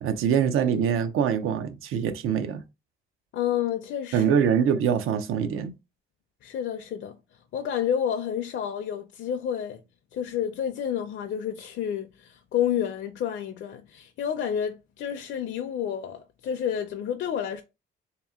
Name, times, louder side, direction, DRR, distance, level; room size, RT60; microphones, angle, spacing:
voice 1, 0.0-2.6 4.1-5.7, right 8 dB, 80° right, 0.6 m, -24 dB
voice 2, 3.3-4.5 6.4-9.8 10.1-17.6, left 9 dB, 60° left, 0.5 m, -30 dB
3.5 x 2.8 x 3.5 m
cardioid pair, 140°, 21 cm